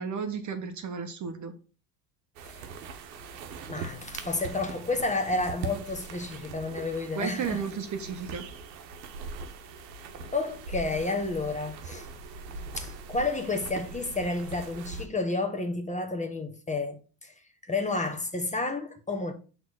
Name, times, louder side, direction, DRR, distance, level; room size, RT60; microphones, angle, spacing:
voice 1, 0.0-1.5 7.2-8.5, right 6 dB, 35° right, 0.9 m, -33 dB
sound 1, 2.4-15.1, right 4 dB, 80° right, 0.9 m, -41 dB
voice 2, 3.7-7.6 10.3-12.1 12.8-17.3 17.7-19.3, left 3 dB, 15° left, 1.2 m, -31 dB
6.1 x 3.4 x 5.7 m
hypercardioid pair, 70°, 49 cm